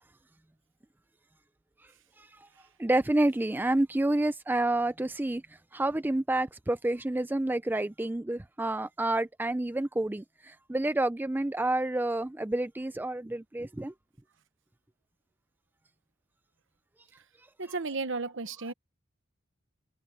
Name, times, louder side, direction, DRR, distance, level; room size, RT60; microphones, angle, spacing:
voice 1, 2.2-2.5 2.8-5.4 5.7-13.9, right 1 dB, 10° right, 0.4 m, -29 dB
voice 2, 17.6-18.7, right 3 dB, 60° right, 1.2 m, -33 dB
head